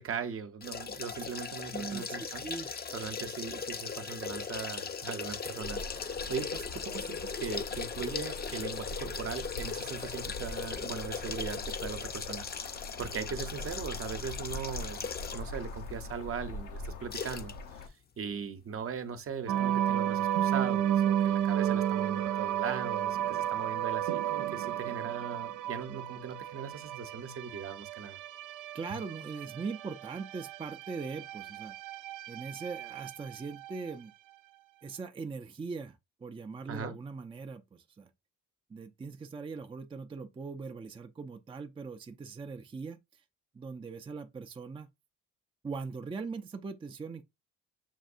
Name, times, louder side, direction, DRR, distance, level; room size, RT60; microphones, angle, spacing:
voice 1, 0.0-12.7 13.0-28.2 36.7-37.0, right 6 dB, 45° right, 0.8 m, -39 dB
sound 1, 0.6-15.6 16.0-16.1 17.1-17.5 17.8-17.9, left 6 dB, 30° left, 0.6 m, -38 dB
voice 2, 1.7-2.7 28.7-31.7 32.3-34.1 34.8-38.1 38.7-43.2 43.5-44.9 45.6-47.2, right 4 dB, 20° right, 0.4 m, -41 dB
sound 2, 5.6-17.9, left 2 dB, 85° left, 0.9 m, -43 dB
sound 3, 19.5-34.0, right 10 dB, 80° right, 0.5 m, -33 dB
7.4 x 2.6 x 2.5 m
cardioid pair, 90°, 30 cm